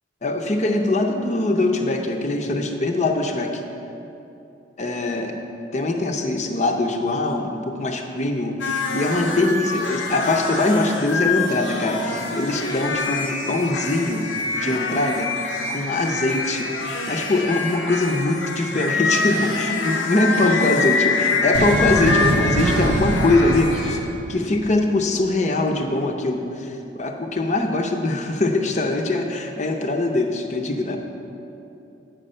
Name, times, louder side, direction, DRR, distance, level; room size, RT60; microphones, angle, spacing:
voice 1, 0.2-3.6 4.8-5.4 5.7-14.2 14.6-15.3 15.7-16.7 17.1-24.0 24.3-31.0, left 2 dB, 35° left, 3 dB, 0.6 m, -22 dB
sound 1, 8.6-24.0, left 3 dB, 80° left, 0.9 m, -25 dB
sound 2, 21.5-25.0, right 2 dB, 70° right, 0.6 m, -24 dB
8.8 x 5.9 x 5.4 m, 2.9 s
head